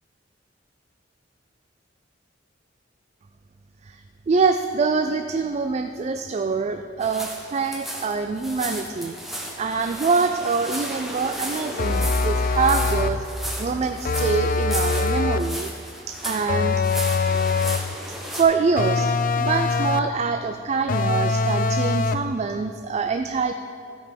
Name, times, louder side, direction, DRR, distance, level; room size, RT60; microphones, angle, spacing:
voice 1, 4.3-9.2 9.6-13.3 13.6-15.7 16.1-16.8 18.3-23.5, right 4 dB, 35° right, 8 dB, 0.3 m, -25 dB
sound 1, 7.0-18.4, equal, ahead, 1.4 m, -34 dB
sound 2, 11.8-13.3 14.0-15.6 16.5-17.9 18.8-20.2 20.9-22.3, left 3 dB, 45° left, 0.4 m, -23 dB
16.0 x 5.4 x 5.2 m, 2.8 s
head